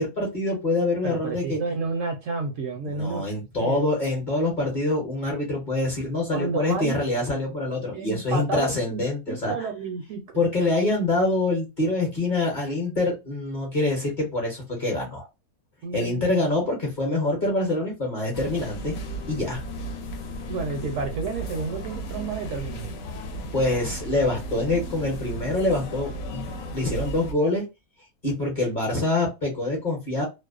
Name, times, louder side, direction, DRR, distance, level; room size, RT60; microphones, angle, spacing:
voice 1, 0.0-1.6 2.9-9.7 10.3-15.3 15.9-18.9 19.3-19.6 23.5-27.6 28.2-30.2, left 2 dB, 40° left, 0.8 m, -25 dB
voice 2, 1.0-3.2 3.6-3.8 6.3-7.0 7.9-9.0 9.3-10.2 15.8-16.4 20.5-22.9, right 4 dB, 65° right, 0.8 m, -30 dB
sound 1, 18.3-27.3, right 1 dB, 70° left, 0.9 m, -35 dB
2.6 x 2.0 x 2.3 m
omnidirectional pair, 1.6 m